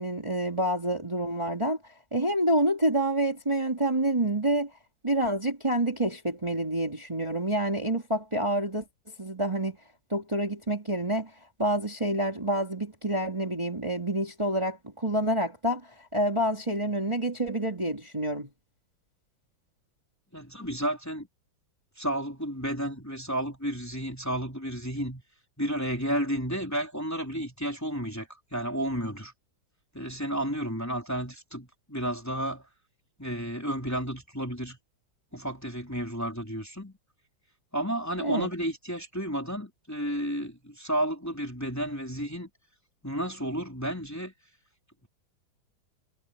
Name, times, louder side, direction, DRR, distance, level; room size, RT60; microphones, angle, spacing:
voice 1, 0.0-4.7 5.0-9.8 10.1-11.3 11.6-18.5 38.2-38.5, right 1 dB, 15° right, 3.1 m, -28 dB
voice 2, 20.3-21.3 22.0-25.2 25.6-29.3 29.9-32.7 33.2-34.8 35.3-36.9 37.7-42.5 43.0-44.3, equal, 5° left, 3.6 m, -32 dB
omnidirectional pair, 2.3 m